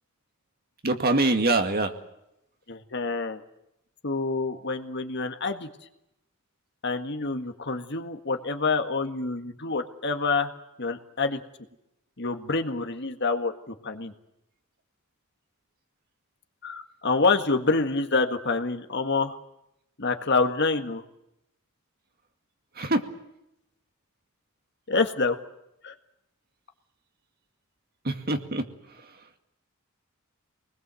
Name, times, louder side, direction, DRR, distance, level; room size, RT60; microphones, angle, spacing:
voice 1, 0.8-1.9 22.8-23.0 28.0-28.6, right 2 dB, 45° right, 6 dB, 2.2 m, -24 dB
voice 2, 2.7-3.4 4.0-5.7 6.8-10.5 10.8-11.4 12.2-14.1 16.6-19.4 20.0-21.0 24.9-25.4 25.8-25.9, left 3 dB, 55° left, 6 dB, 1.8 m, -27 dB
26.0 x 20.5 x 7.7 m, 0.84 s
head